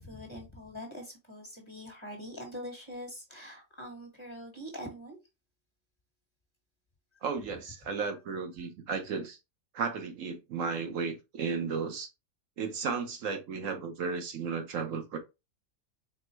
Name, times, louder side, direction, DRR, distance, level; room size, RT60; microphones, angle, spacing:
voice 1, 0.0-5.2, equal, 20° left, 1.3 m, -43 dB
voice 2, 7.2-9.4 9.7-12.1 12.6-15.2, right 5 dB, 70° right, 1.1 m, -34 dB
4.4 x 2.1 x 4.3 m
omnidirectional pair, 1.4 m